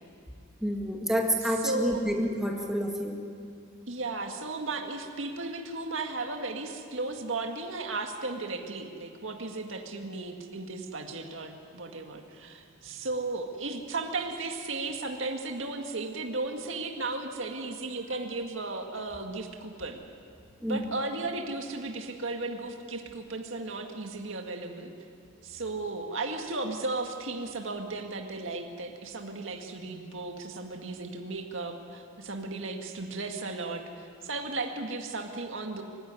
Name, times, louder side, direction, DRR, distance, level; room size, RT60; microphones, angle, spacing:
voice 1, 0.6-3.2 20.6-20.8, equal, ahead, 0 dB, 1.9 m, -28 dB
voice 2, 1.4-2.0 3.9-20.0 20.7-24.9 25.4-35.8, right 3 dB, 60° right, 4 dB, 2.0 m, -35 dB
25.0 x 16.5 x 9.8 m, 2.3 s
head